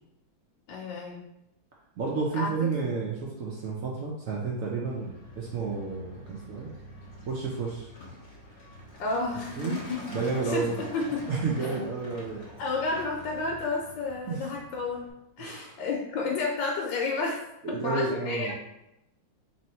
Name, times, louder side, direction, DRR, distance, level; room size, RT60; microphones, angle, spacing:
voice 1, 0.7-1.2 2.3-2.5 9.0-10.0 10.5-11.3 12.6-15.0 15.4-17.4 17.7-18.5, left 3 dB, 75° left, -2 dB, 1.2 m, -31 dB
voice 2, 2.0-6.7 7.3-7.9 9.6-9.8 10.1-10.8 11.3-12.5 14.3-14.4 15.4-15.8 17.6-18.5, right 4 dB, 80° right, -3 dB, 0.7 m, -31 dB
Truck, 4.8-15.1, left 1 dB, 50° left, 0.8 m, -45 dB
3.1 x 3.0 x 4.2 m, 0.87 s
omnidirectional pair, 2.1 m